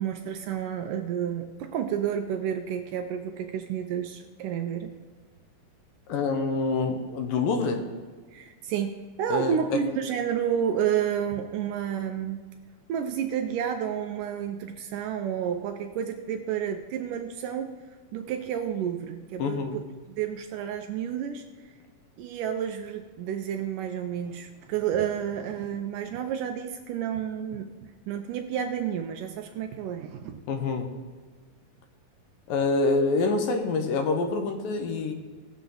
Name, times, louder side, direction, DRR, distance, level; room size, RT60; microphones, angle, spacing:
voice 1, 0.0-4.9 8.3-8.9 9.2-12.4 12.9-17.7 18.1-19.6 20.2-21.4 22.2-27.7 28.1-30.4, right 9 dB, 75° right, 5 dB, 2.2 m, -30 dB
voice 2, 6.1-7.8 9.3-9.8 19.4-19.8 30.5-30.9 32.5-35.1, left 3 dB, 80° left, 5 dB, 2.8 m, -26 dB
18.5 x 7.2 x 3.9 m, 1.5 s
omnidirectional pair, 4.0 m